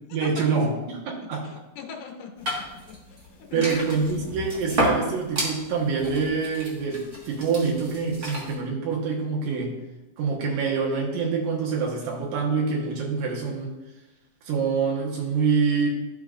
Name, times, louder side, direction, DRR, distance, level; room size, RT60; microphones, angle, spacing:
voice 1, 0.1-1.5 3.5-9.8 10.2-13.8 14.4-15.9, right 5 dB, 75° right, -2 dB, 3.0 m, -26 dB
voice 2, 1.2-3.8 4.1-4.3, left 5 dB, 75° left, 2 dB, 2.3 m, -40 dB
sound 1, 2.4-8.5, equal, 35° right, 1.4 m, -32 dB
13.5 x 5.3 x 2.5 m, 1.0 s
omnidirectional pair, 3.8 m